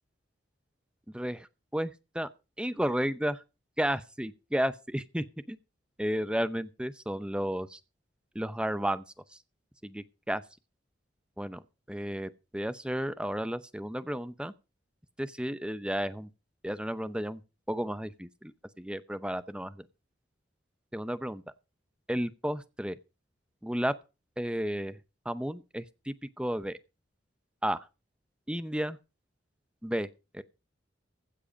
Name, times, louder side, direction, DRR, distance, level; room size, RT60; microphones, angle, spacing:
voice 1, 1.1-2.3 2.6-3.4 3.8-5.6 6.0-7.8 8.3-9.0 9.3-9.4 9.8-10.4 11.4-11.6 11.9-14.5 15.2-16.3 16.6-17.4 17.7-19.9 20.9-21.4 22.1-23.0 23.6-23.9 24.4-25.0 25.2-26.8 27.6-27.9 28.5-29.0 29.8-30.1 30.3-30.4, equal, 5° right, 0.6 m, -33 dB
15.5 x 7.6 x 5.2 m
head